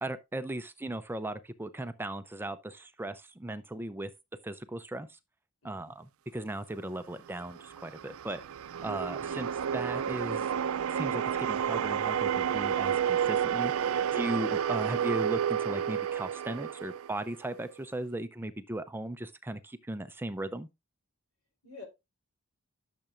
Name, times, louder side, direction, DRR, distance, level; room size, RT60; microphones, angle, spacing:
voice 1, 0.0-4.1 4.4-5.2 5.6-8.4 8.8-10.5 10.9-20.7, right 1 dB, 10° right, 0.5 m, -37 dB
voice 2, 5.6-5.9 21.6-21.8, left 4 dB, 80° left, 3.9 m, -49 dB
sound 1, 7.3-17.7, right 8 dB, 75° right, 0.4 m, -31 dB
12.0 x 6.8 x 2.4 m
head